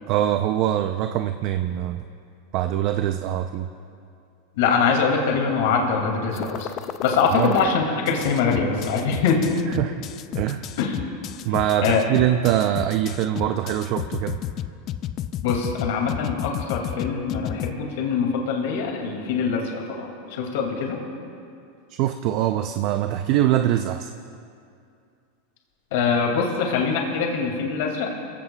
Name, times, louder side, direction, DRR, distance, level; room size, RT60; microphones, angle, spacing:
voice 1, 0.1-2.0 2.5-3.7 7.3-7.5 9.8-9.9 10.3-10.6 11.4-14.4 22.0-24.1, right 12 dB, 45° right, 7 dB, 0.5 m, -23 dB
voice 2, 4.5-6.7 7.0-9.4 10.8-11.0 11.8-12.0 15.4-21.0 25.9-28.2, left 5 dB, 70° left, 1 dB, 2.2 m, -23 dB
sound 1, 6.3-7.6 8.1-17.7, left 12 dB, 35° left, 0.4 m, -31 dB
25.0 x 16.0 x 2.3 m, 2.4 s
supercardioid pair, 145°, 0 cm